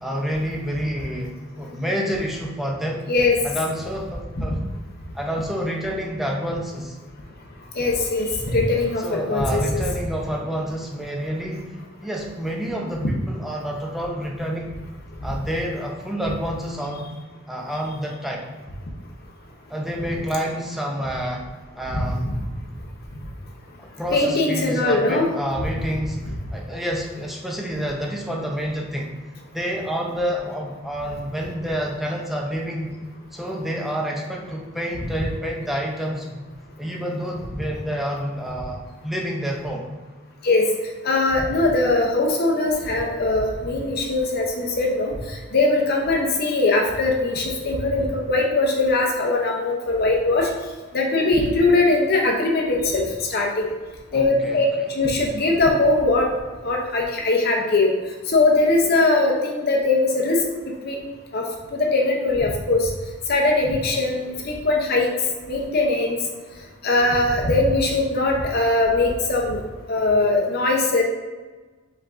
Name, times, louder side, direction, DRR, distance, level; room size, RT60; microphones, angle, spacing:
voice 1, 0.0-3.0 3.4-4.6 5.1-7.0 9.0-14.7 15.2-17.1 17.5-18.4 19.7-21.5 21.8-22.3 23.8-29.1 29.5-32.9 33.3-36.4 36.8-39.9 54.1-54.9, equal, ahead, -1 dB, 0.5 m, -28 dB
voice 2, 3.1-3.4 4.5-4.6 7.7-9.8 21.9-22.0 24.1-25.3 40.4-40.7 41.0-50.5 50.9-53.0 53.3-53.7 54.1-54.7 54.9-56.3 56.6-57.9 58.3-60.4 60.8-61.0 61.3-62.9 63.3-65.1 65.5-66.2 66.8-69.6 69.9-71.0, left 2 dB, 50° left, 0 dB, 0.7 m, -21 dB
5.2 x 3.5 x 2.5 m, 1.3 s
head